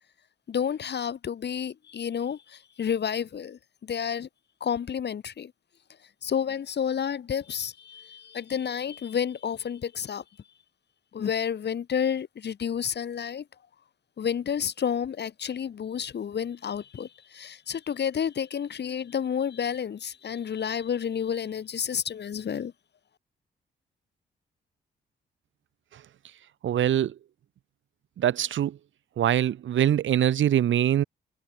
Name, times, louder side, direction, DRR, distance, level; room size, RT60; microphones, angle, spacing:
voice 1, 0.5-4.3 4.6-5.5 6.2-10.2 11.1-13.4 14.2-22.7, left 8 dB, 55° left, 1.4 m, -30 dB
voice 2, 26.6-27.1 28.2-28.8 29.2-31.0, right 11 dB, 65° right, 1.4 m, -23 dB
hypercardioid pair, 45°, 21 cm